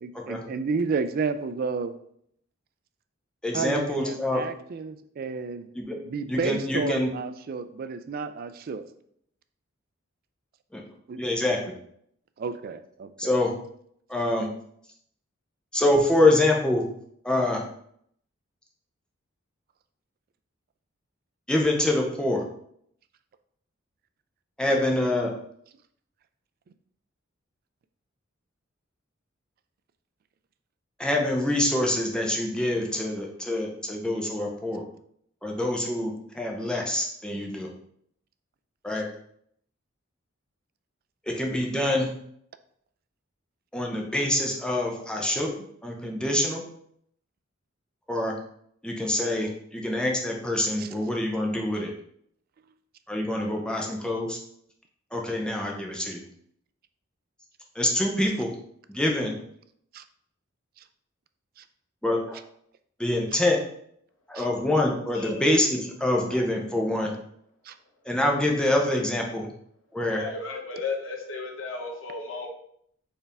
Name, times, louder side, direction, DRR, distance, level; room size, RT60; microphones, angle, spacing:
voice 1, 0.0-2.0 3.5-5.7 6.0-8.8 11.1-11.2 12.4-13.3 50.8-50.9 59.9-60.0 64.3-64.4 67.7-67.8, right 5 dB, 45° right, 11 dB, 0.3 m, -31 dB
voice 2, 3.4-4.4 5.7-6.0 6.3-7.1 10.7-10.8 11.2-11.6 13.2-13.5 14.1-14.5 15.7-16.8 17.2-17.6 21.5-22.4 24.6-25.3 31.0-34.8 35.4-37.7 38.8-39.1 41.2-42.1 43.7-45.5 45.8-46.6 48.1-48.3 48.8-51.9 53.1-54.4 55.1-56.2 57.7-58.5 58.9-59.3 62.0-62.4 63.0-63.6 64.3-67.1 68.0-69.5 69.9-70.2, left 1 dB, 5° left, 0 dB, 0.7 m, -25 dB
voice 3, 70.0-72.5, left 4 dB, 70° left, 0 dB, 1.1 m, -34 dB
4.5 x 3.4 x 3.4 m, 0.69 s
head